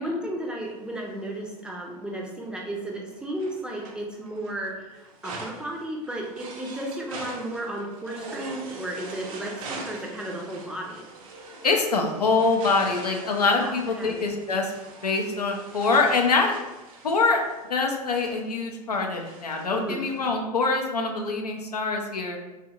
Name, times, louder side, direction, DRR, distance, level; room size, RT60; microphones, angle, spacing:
voice 1, 0.0-11.0 13.6-14.3 19.7-20.0, right 1 dB, 5° right, -2 dB, 0.5 m, -34 dB
sound 1, 0.6-1.8 2.4-20.3, right 3 dB, 60° right, 0.6 m, -43 dB
voice 2, 11.6-14.7 15.0-16.5 17.0-17.4 17.7-22.4, left 4 dB, 85° left, 2 dB, 0.4 m, -24 dB
2.7 x 2.4 x 2.7 m, 1.1 s
figure-of-eight pair, 85°, 20 cm